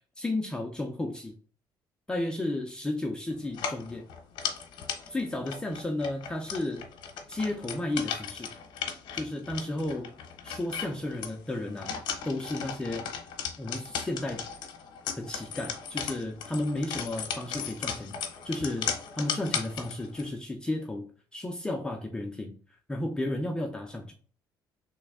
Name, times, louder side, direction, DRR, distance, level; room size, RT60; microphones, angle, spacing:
voice 1, 0.2-1.4 2.1-4.1 5.1-6.8 7.3-8.6 9.1-10.1 10.4-11.9 12.2-13.1 13.6-14.5 15.2-21.1 21.3-22.6 22.9-24.1, left 1 dB, 10° left, 2 dB, 0.4 m, -33 dB
sound 1, 3.5-20.3, left 7 dB, 75° left, 0.8 m, -37 dB
3.2 x 3.1 x 3.5 m, 0.43 s
cardioid pair, 150°, 8 cm